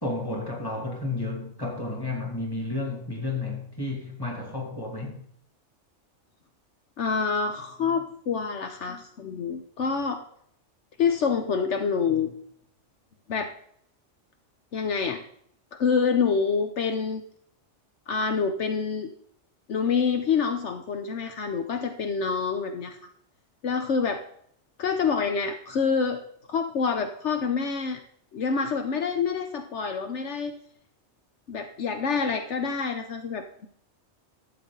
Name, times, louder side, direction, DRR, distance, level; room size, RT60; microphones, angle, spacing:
voice 1, 0.0-5.2, left 2 dB, 20° left, 2.7 m, -32 dB
voice 2, 7.0-10.2 11.0-12.3 13.3-13.5 14.7-15.2 15.8-17.2 18.1-19.1 19.7-23.0 23.6-24.2 24.8-26.2 26.5-28.0 28.3-30.5 31.5-33.7, left 5 dB, 70° left, 1.2 m, -27 dB
12.5 x 7.8 x 3.9 m
omnidirectional pair, 1.2 m